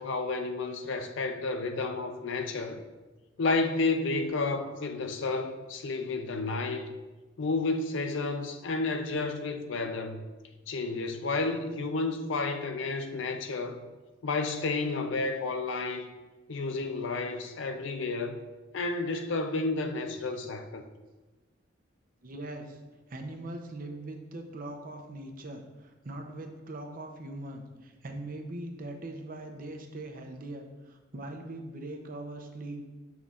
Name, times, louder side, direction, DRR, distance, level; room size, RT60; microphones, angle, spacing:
voice 1, 0.0-2.8 3.4-6.9 7.4-10.2 10.7-13.8 14.2-16.1 16.5-18.4 18.7-20.8, left 3 dB, 70° left, 0.5 m, -31 dB
voice 2, 22.2-22.8 23.1-32.8, right 1 dB, 45° right, 0.7 m, -41 dB
6.9 x 5.9 x 2.4 m
head